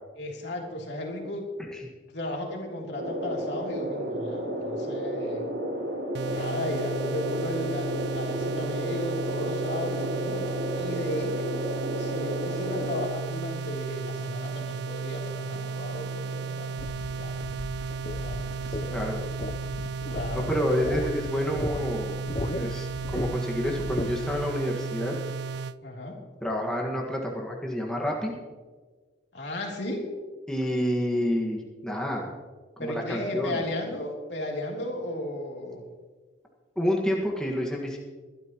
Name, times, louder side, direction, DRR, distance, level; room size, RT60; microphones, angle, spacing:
voice 1, 0.2-1.5 2.1-5.5 6.3-10.5 10.8-11.6 12.0-17.3 18.2-19.1 20.1-20.5 25.8-26.2 29.3-30.1 32.8-35.9, left 1 dB, 65° left, -1 dB, 3.1 m, -35 dB
sound 1, 3.0-13.1, equal, 75° right, 3.0 m, -32 dB
sound 2, 6.1-25.8, right 4 dB, 60° right, 0.3 m, -34 dB
sound 3, 16.8-24.5, left 1 dB, 35° left, 0.6 m, -36 dB
voice 2, 18.9-19.2 20.3-25.2 26.4-28.3 30.5-32.3 32.8-33.6 36.8-38.0, equal, 5° left, -2 dB, 1.6 m, -29 dB
22.0 x 12.0 x 3.0 m, 1.4 s
head